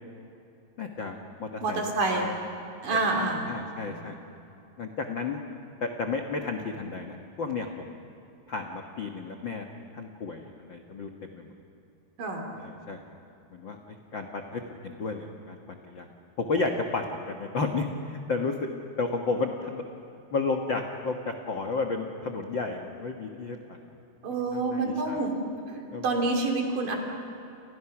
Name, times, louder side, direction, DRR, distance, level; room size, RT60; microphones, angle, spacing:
voice 1, 0.8-1.8 2.1-2.3 3.1-4.1 4.8-5.4 5.8-7.7 8.5-9.6 9.9-11.5 12.5-13.0 13.5-16.1 16.4-18.7 19.0-19.8 20.3-23.8 24.5-25.3 25.9-26.0, left 3 dB, 75° left, 3 dB, 1.1 m, -32 dB
voice 2, 1.6-2.3 2.8-3.5 3.8-3.9 12.2-12.4 24.2-25.4 25.7-27.0, right 3 dB, 55° right, 2 dB, 4.7 m, -28 dB
29.5 x 29.5 x 6.1 m, 2.7 s
omnidirectional pair, 4.6 m